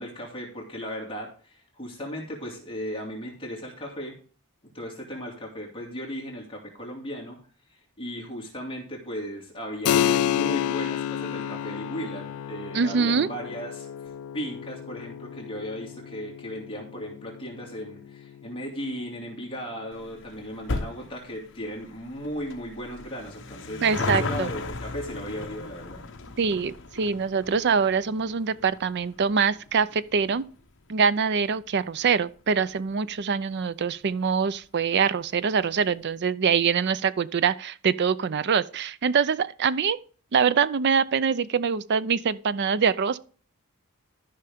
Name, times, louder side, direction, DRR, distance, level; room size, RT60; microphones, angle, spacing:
voice 1, 0.0-4.2 4.7-7.4 7.7-26.0, equal, 25° left, 2.5 m, -36 dB
Keyboard (musical), 9.9-20.1, left 10 dB, 70° left, 0.3 m, -31 dB
voice 2, 12.7-13.3 23.8-24.5 26.4-30.4 30.9-40.0 40.3-43.2, right 6 dB, 50° right, 0.5 m, -24 dB
sound 1, 19.9-32.7 33.0-33.1 33.9-34.0 34.2-34.3 34.6-34.7, left 3 dB, 55° left, 1.0 m, -37 dB
13.0 x 5.6 x 3.6 m
head